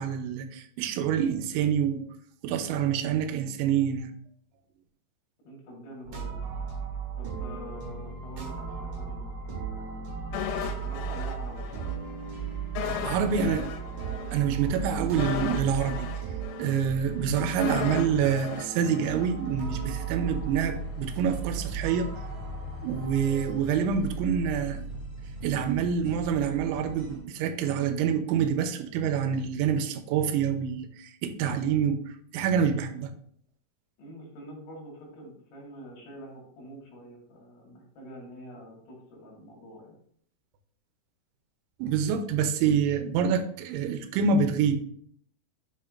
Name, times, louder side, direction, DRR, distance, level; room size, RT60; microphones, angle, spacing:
voice 1, 0.0-2.0 2.4-4.1 13.0-13.7 14.3-16.1 16.6-22.1 22.8-24.8 25.4-32.0 32.3-33.1 41.8-44.8, right 7 dB, 90° right, 8 dB, 3.1 m, -26 dB
voice 2, 5.4-6.4 7.2-10.1 10.7-11.9 13.3-14.0 34.0-40.0, equal, 65° left, -1 dB, 3.7 m, -46 dB
sound 1, 6.0-23.5, right 6 dB, 55° right, 2.0 m, -36 dB
sound 2, 10.3-12.0 12.2-12.4 12.8-19.8 20.1-20.3, left 9 dB, 85° left, 3.0 m, -36 dB
sound 3, 19.6-27.2, right 2 dB, 40° right, 0.5 m, -39 dB
10.0 x 5.6 x 2.5 m, 0.63 s
omnidirectional pair, 5.3 m